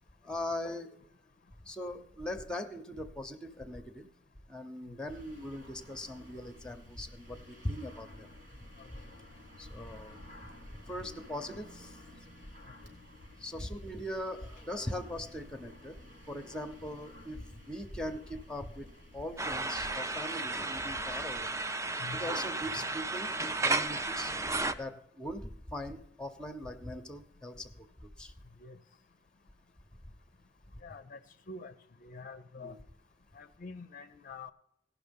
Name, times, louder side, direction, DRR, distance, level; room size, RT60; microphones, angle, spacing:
voice 1, 0.2-0.9 1.7-4.0 4.5-8.3 9.6-10.2 10.9-12.0 13.4-16.0 16.3-18.9 19.1-21.6 22.2-23.3 23.6-24.3 24.7-28.3 32.6-32.8, left 1 dB, 5° left, 10 dB, 0.8 m, -40 dB
sound 1, 5.1-19.5, left 1 dB, 85° right, 3.5 m, -54 dB
sound 2, 19.4-24.7, right 2 dB, 15° right, 0.5 m, -33 dB
voice 2, 30.8-31.2 31.5-31.7 32.0-32.8 33.3-34.5, left 4 dB, 45° left, 10 dB, 0.5 m, -46 dB
17.0 x 6.0 x 5.2 m, 0.78 s
head